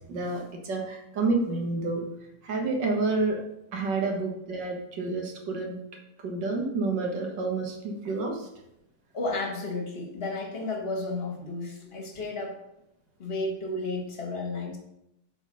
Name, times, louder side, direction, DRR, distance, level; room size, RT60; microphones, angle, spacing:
voice 1, 0.1-2.0 2.4-3.4 3.7-5.8 6.2-8.5, right 3 dB, 75° right, 1 dB, 2.0 m, -29 dB
voice 2, 9.1-12.6 13.2-14.8, left 2 dB, 35° left, 1 dB, 1.5 m, -32 dB
7.1 x 4.1 x 5.4 m, 0.83 s
omnidirectional pair, 2.0 m